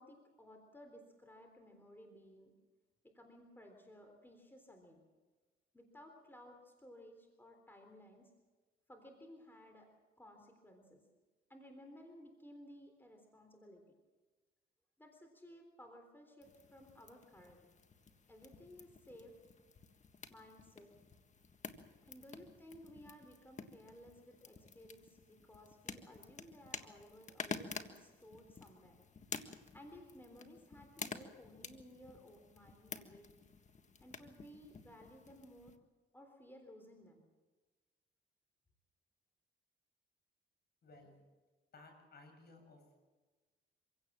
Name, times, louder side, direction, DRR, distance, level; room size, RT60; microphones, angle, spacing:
voice 1, 0.0-2.6 3.0-5.0 5.7-8.3 8.9-9.9 10.2-11.0 11.5-13.8 15.0-17.7 18.3-19.4 20.3-20.9 22.0-29.0 29.7-33.3 34.0-35.7 36.1-37.2, equal, 10° left, 4 dB, 3.8 m, -57 dB
sound 1, 16.4-35.8, left 5 dB, 35° left, 1.6 m, -51 dB
voice 2, 40.8-41.1 41.7-42.8, left 3 dB, 55° left, 4 dB, 7.7 m, -58 dB
25.5 x 16.5 x 7.5 m, 1.3 s
cardioid pair, 90°, 20 cm